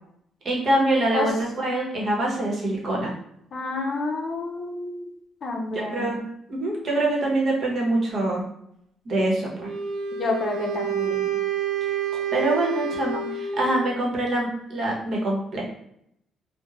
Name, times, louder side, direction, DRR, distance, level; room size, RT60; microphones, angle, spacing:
voice 1, 0.4-3.1 5.7-6.2 6.5-8.4 9.0-9.7 12.1-15.8, right 1 dB, 55° right, -2 dB, 1.0 m, -25 dB
voice 2, 3.5-5.0 5.4-6.1 10.1-11.3, left 2 dB, 50° left, 1 dB, 0.6 m, -29 dB
Wind instrument woodwind instrument, 9.6-13.9, right 7 dB, 70° right, 0.3 m, -28 dB
3.0 x 2.1 x 2.4 m, 0.75 s
cardioid pair, 90°, 0 cm